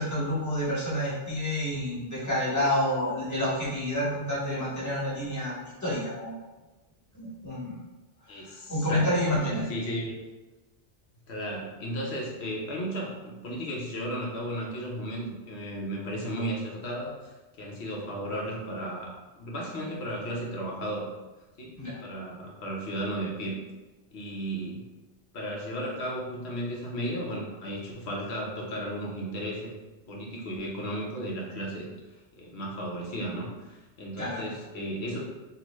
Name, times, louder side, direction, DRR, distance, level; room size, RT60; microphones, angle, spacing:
voice 1, 0.0-6.3 7.1-7.8 8.3-9.6 21.8-21.9 34.2-34.5, left 1 dB, 15° left, -9 dB, 1.2 m, -29 dB
voice 2, 8.3-10.1 11.3-21.1 21.6-21.7 22.0-23.6 24.1-24.8 25.3-29.7 30.1-31.9 32.3-35.2, equal, 70° left, -2 dB, 1.1 m, -34 dB
3.8 x 2.6 x 3.0 m, 1.1 s
omnidirectional pair, 1.2 m